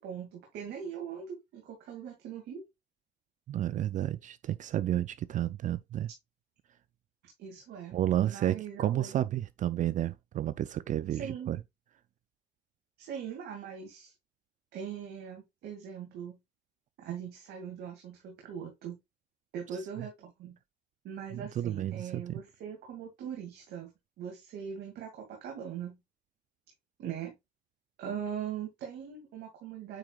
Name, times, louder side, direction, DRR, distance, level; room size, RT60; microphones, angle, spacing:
voice 1, 0.0-2.6 7.4-9.2 11.1-11.6 13.0-14.1 14.7-16.4 17.0-19.0 19.5-20.6 21.0-23.9 24.2-26.0 27.0-27.3 28.0-30.0, right 8 dB, 75° right, 2.3 m, -41 dB
voice 2, 3.5-6.1 7.9-11.6 21.3-22.4, right 12 dB, 50° right, 0.4 m, -31 dB
8.8 x 4.8 x 2.3 m
cardioid pair, 110°, 17 cm